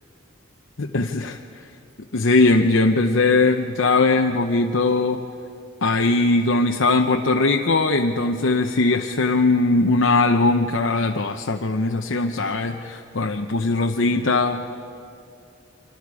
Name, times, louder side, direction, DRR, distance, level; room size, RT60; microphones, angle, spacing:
voice 1, 0.8-1.4 2.1-5.3 5.8-14.6, left 3 dB, 75° left, 3 dB, 0.8 m, -20 dB
27.0 x 26.0 x 4.9 m, 2.7 s
head